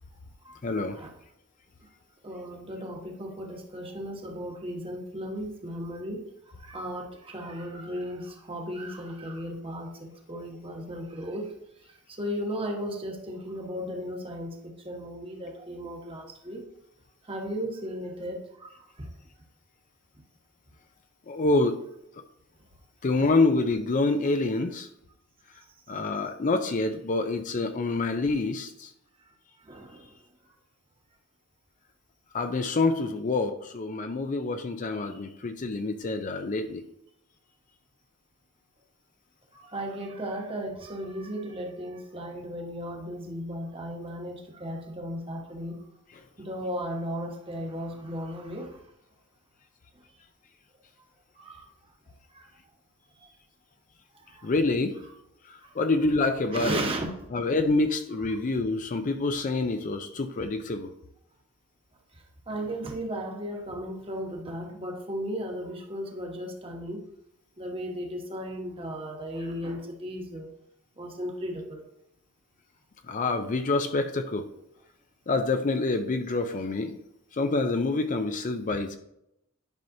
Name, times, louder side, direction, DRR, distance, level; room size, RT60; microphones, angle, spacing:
voice 1, 0.6-1.0 21.3-21.8 23.0-24.9 25.9-28.9 32.3-36.8 54.4-55.0 55.8-56.8 57.3-60.9 73.1-74.5 75.3-77.0 77.3-79.0, left 3 dB, 35° left, 7 dB, 0.4 m, -27 dB
voice 2, 2.2-6.2 6.6-11.5 12.2-16.6 17.3-19.1 29.6-30.1 39.5-45.8 46.4-48.8 51.3-51.6 52.3-52.4 54.3-54.5 55.6-55.7 56.5-57.1 62.5-67.0 67.6-70.5 71.0-71.8, equal, 25° right, 1 dB, 1.2 m, -35 dB
10.5 x 5.7 x 2.7 m, 0.80 s
head